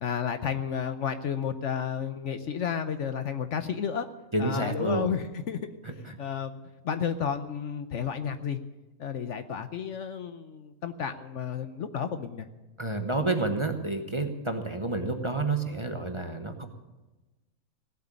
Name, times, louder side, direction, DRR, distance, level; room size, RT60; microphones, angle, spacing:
voice 1, 0.0-4.1 4.4-5.6 6.2-6.6 6.8-8.6 9.0-12.5, left 7 dB, 60° left, 9 dB, 1.0 m, -32 dB
voice 2, 4.3-5.1 5.8-6.2 12.8-16.7, right 2 dB, 20° right, 5 dB, 1.0 m, -29 dB
17.5 x 8.0 x 9.9 m, 1.1 s
omnidirectional pair, 1.5 m